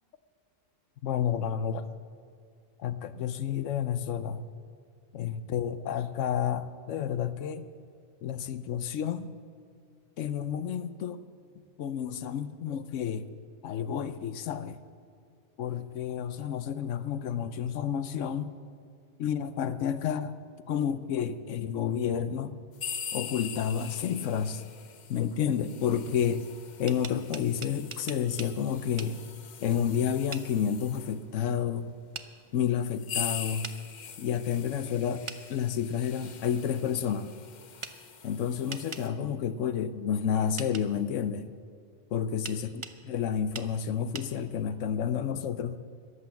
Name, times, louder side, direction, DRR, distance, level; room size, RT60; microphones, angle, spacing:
voice 1, 1.0-1.9 2.8-4.4 5.1-7.7 8.2-9.3 10.2-11.2 11.8-13.3 13.6-14.8 15.6-18.5 19.2-20.4 20.7-22.6 23.1-24.6 25.1-26.5 26.8-29.2 29.6-31.9 32.5-33.7 34.2-35.2 35.5-37.3 38.2-41.4 42.1-42.6 43.0-45.8, left 8 dB, 75° left, 12 dB, 1.0 m, -30 dB
sound 1, 22.7-31.2 32.0-32.1 32.7-39.1, left 7 dB, 45° left, 0.6 m, -42 dB
sound 2, 26.7-28.5 29.0-29.1 30.3-30.5 32.1-32.3 33.6-33.8 35.3-35.4 37.8-38.0 38.7-39.1 40.6-40.9 42.5-43.0 43.5-43.7 44.1-44.3, right 5 dB, 40° right, 0.4 m, -40 dB
13.5 x 11.5 x 7.1 m, 2.3 s
omnidirectional pair, 1.3 m